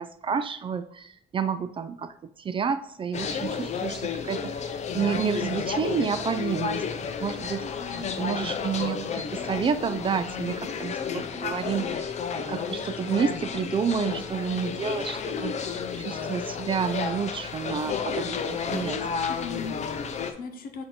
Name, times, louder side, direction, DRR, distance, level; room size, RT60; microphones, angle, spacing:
voice 1, 0.0-2.1 2.4-6.8 7.2-7.7 8.2-12.1 12.4-19.0, right 6 dB, 30° right, 12 dB, 0.3 m, -30 dB
sound 1, 3.1-20.3, left 6 dB, 40° left, 0.6 m, -32 dB
voice 2, 7.6-8.1 19.3-20.8, left 5 dB, 60° left, 5 dB, 1.1 m, -39 dB
8.2 x 2.8 x 4.2 m, 0.71 s
cardioid pair, 110°, 17 cm